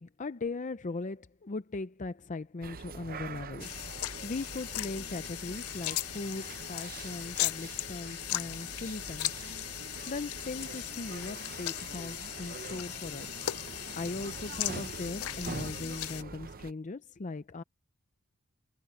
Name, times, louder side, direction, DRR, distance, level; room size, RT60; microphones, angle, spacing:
voice 1, 0.0-3.7 4.0-9.3 9.9-13.4 13.9-17.6, left 3 dB, 35° left, 0.6 m, -39 dB
sound 1, 2.6-16.7, right 4 dB, 45° right, 0.6 m, -44 dB
sound 2, 3.6-16.2, left 15 dB, 85° left, 0.5 m, -38 dB
head